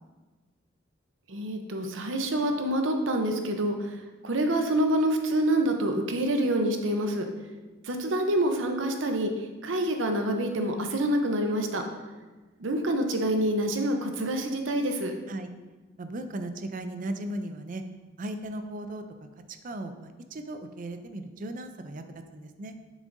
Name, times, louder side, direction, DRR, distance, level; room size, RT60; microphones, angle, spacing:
voice 1, 1.3-3.9 4.2-7.2 7.8-9.3 9.6-11.8 12.6-15.1, right 1 dB, 85° right, 5 dB, 0.8 m, -27 dB
voice 2, 16.0-17.8 18.2-19.0 19.6-22.7, right 1 dB, 45° right, 8 dB, 0.5 m, -36 dB
7.2 x 6.3 x 2.6 m, 1.3 s
head